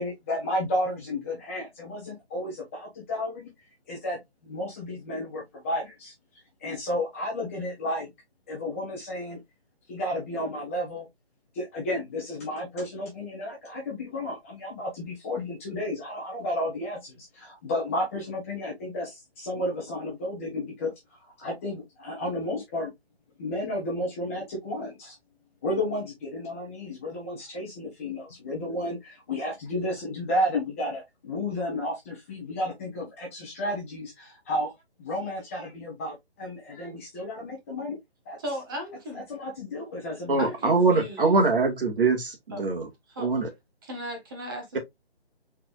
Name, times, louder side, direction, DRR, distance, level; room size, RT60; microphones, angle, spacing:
voice 1, 0.0-3.5 3.9-6.1 6.6-8.1 8.5-9.4 9.9-11.1 11.5-20.9 21.4-22.9 23.4-25.1 25.6-34.7 35.0-38.0 38.2-38.4 39.1-40.5, left 1 dB, 15° left, 1.1 m, -32 dB
voice 2, 38.4-39.2 40.4-41.3 42.5-42.6 43.1-43.3 43.8-44.8, equal, 20° right, 1.4 m, -36 dB
voice 3, 40.3-42.9 43.2-43.5, right 3 dB, 60° right, 1.9 m, -23 dB
4.3 x 4.2 x 2.4 m
hypercardioid pair, 165°, 32 cm